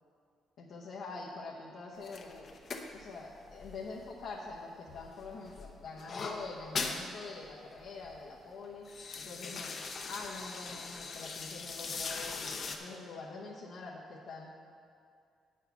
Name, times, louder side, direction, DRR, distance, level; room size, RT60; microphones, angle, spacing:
voice 1, 0.6-2.5 2.9-9.8 10.1-14.5, left 3 dB, 75° left, -5 dB, 1.1 m, -45 dB
sound 1, 2.0-4.6 4.9-7.1 7.5-7.6 7.8-8.2 8.6-12.8, left 4 dB, 50° left, 0.8 m, -41 dB
8.2 x 6.6 x 5.8 m, 2.4 s
cardioid pair, 90°, 0 cm